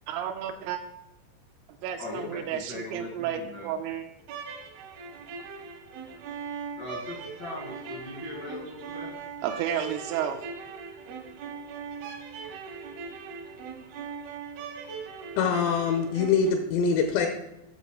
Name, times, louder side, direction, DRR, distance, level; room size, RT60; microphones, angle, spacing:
voice 1, 0.1-0.8 1.8-4.0 9.4-10.4, right 9 dB, 85° right, 4 dB, 2.3 m, -32 dB
voice 2, 2.0-3.1 3.3-3.7 6.8-9.1, left 2 dB, 55° left, -4 dB, 1.1 m, -39 dB
sound 1, 4.2-16.5, right 5 dB, 70° right, 2.7 m, -40 dB
voice 3, 15.4-17.3, left 5 dB, 85° left, 5 dB, 2.9 m, -24 dB
8.3 x 6.5 x 4.8 m, 0.89 s
omnidirectional pair, 5.3 m